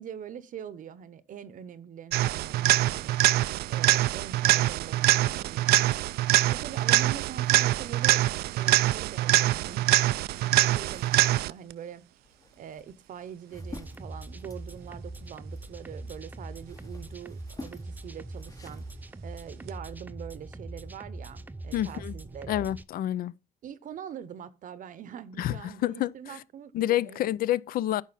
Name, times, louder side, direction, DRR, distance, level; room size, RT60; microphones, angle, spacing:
voice 1, 0.0-3.2 3.7-6.0 6.5-9.9 10.4-12.0 12.6-18.8 19.2-22.6 23.6-27.3, right 8 dB, 50° right, 0.8 m, -43 dB
sound 1, 2.1-11.7 19.7-19.8, right 16 dB, 70° right, 0.4 m, -24 dB
sound 2, 10.7-16.0 16.4-19.0, left 2 dB, 20° left, 0.8 m, -50 dB
sound 3, 13.5-22.8, right 2 dB, 10° right, 0.5 m, -42 dB
voice 2, 21.7-22.1 22.5-23.3 25.4-26.4 26.7-28.0, left 13 dB, 60° left, 0.5 m, -28 dB
9.8 x 6.1 x 4.0 m
cardioid pair, 110°, 17 cm